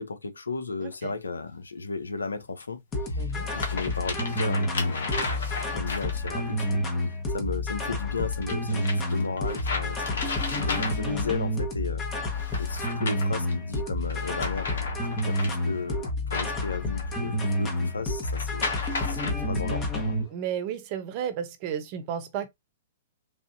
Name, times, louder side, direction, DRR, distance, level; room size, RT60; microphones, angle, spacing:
voice 1, 0.0-6.8 7.3-14.9 15.2-18.7 19.0-20.2, left 4 dB, 90° left, 0.6 m, -35 dB
voice 2, 0.8-1.1 3.2-3.5 5.1-5.3 20.3-22.5, right 9 dB, 45° right, 0.7 m, -33 dB
sound 1, 0.9-1.0 2.6-2.7 3.3-6.5 8.4-11.3 12.3-13.5 14.0-17.2 18.2-19.3, left 3 dB, 70° left, 1.1 m, -34 dB
sound 2, 2.9-20.2, left 1 dB, 25° left, 1.1 m, -29 dB
3.5 x 2.6 x 2.6 m
hypercardioid pair, 115°, 0 cm